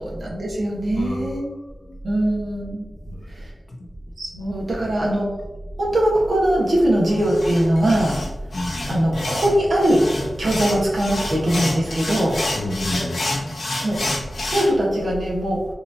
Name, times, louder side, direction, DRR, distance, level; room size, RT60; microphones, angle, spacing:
voice 1, 0.0-1.5 2.0-2.8 3.3-3.5 4.2-5.4 5.8-8.2 8.9-10.1 10.4-12.4 13.8-14.0 14.4-15.7, right 1 dB, 75° right, -4 dB, 1.0 m, -21 dB
voice 2, 0.9-2.0 3.1-3.3 3.7-3.9 4.8-5.2 8.5-8.8 12.6-13.3, left 1 dB, 60° left, 1 dB, 0.6 m, -31 dB
sound 1, 7.1-14.7, left 2 dB, 85° left, 1.0 m, -28 dB
4.2 x 2.7 x 2.6 m, 1.1 s
wide cardioid pair, 65°, 0 cm